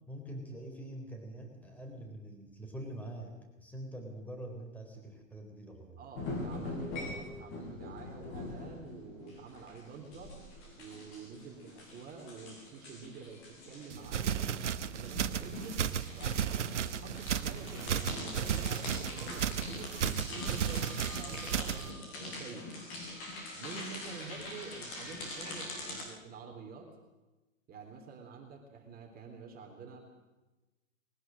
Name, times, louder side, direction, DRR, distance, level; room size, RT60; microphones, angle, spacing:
voice 1, 0.1-6.0, right 1 dB, 5° left, 2 dB, 4.0 m, -45 dB
voice 2, 6.0-10.4 10.8-14.6 14.8-15.9 16.1-22.7 23.5-27.0 27.7-30.0, right 4 dB, 20° right, 2 dB, 3.4 m, -48 dB
sound 1, 6.2-26.0, left 2 dB, 30° left, 6.4 m, -43 dB
sound 2, 13.9-21.9, right 8 dB, 60° right, 1.1 m, -34 dB
21.0 x 19.5 x 7.6 m, 1.1 s
figure-of-eight pair, 110°, 40 cm